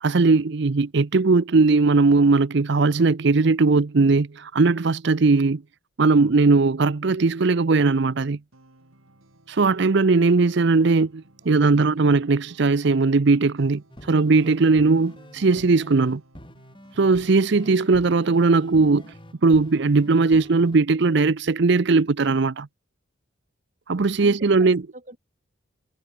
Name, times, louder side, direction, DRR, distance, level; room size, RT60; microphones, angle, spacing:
voice 1, 0.0-5.6 6.0-8.4 9.5-16.2 17.0-19.1 19.4-22.7 23.9-24.8, right 3 dB, 55° right, 0.6 m, -19 dB
sound 1, 8.5-20.8, right 1 dB, 90° right, 3.6 m, -56 dB
voice 2, 11.4-12.1 24.2-25.2, right 1 dB, 35° right, 7.4 m, -44 dB
sound 2, 13.9-20.8, left 1 dB, 25° left, 2.7 m, -46 dB
head